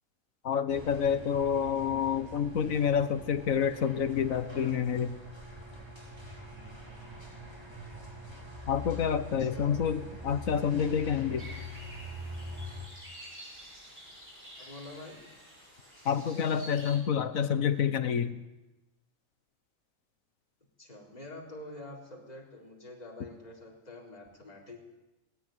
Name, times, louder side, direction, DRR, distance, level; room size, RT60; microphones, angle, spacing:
voice 1, 0.4-5.2 8.7-11.5 16.0-18.3, left 7 dB, 85° left, 12 dB, 1.6 m, -28 dB
sound 1, 0.7-12.9, left 1 dB, 20° right, 3.9 m, -44 dB
voice 2, 9.4-9.8 14.6-15.3 20.8-24.8, left 1 dB, 30° left, -2 dB, 4.2 m, -46 dB
sound 2, 11.4-17.0, equal, 45° right, 8.1 m, -49 dB
19.5 x 17.5 x 9.3 m, 1.1 s
omnidirectional pair, 1.4 m